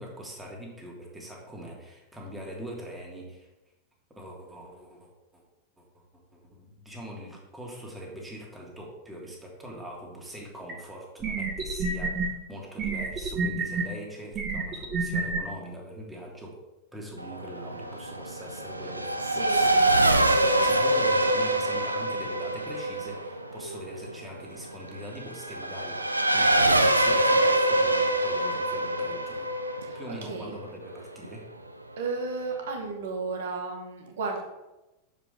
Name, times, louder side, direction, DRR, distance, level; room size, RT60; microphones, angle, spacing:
voice 1, 0.0-3.5 4.2-5.4 5.8-5.9 6.3-16.6 16.9-29.5 29.9-31.4, equal, 10° right, -2 dB, 1.8 m, -42 dB
sound 1, 10.7-10.8 11.2-12.3 12.8-13.8 14.3-15.4, right 4 dB, 30° right, 1.3 m, -28 dB
Race car auto racing / Accelerating revving vroom, 17.2-31.3, right 1 dB, 85° right, 0.4 m, -25 dB
voice 2, 19.2-20.0 20.2-20.9 29.8-30.5 32.0-34.4, right 4 dB, 60° right, 3 dB, 1.3 m, -34 dB
6.8 x 5.0 x 3.6 m, 1.0 s
figure-of-eight pair, 90°, 0 cm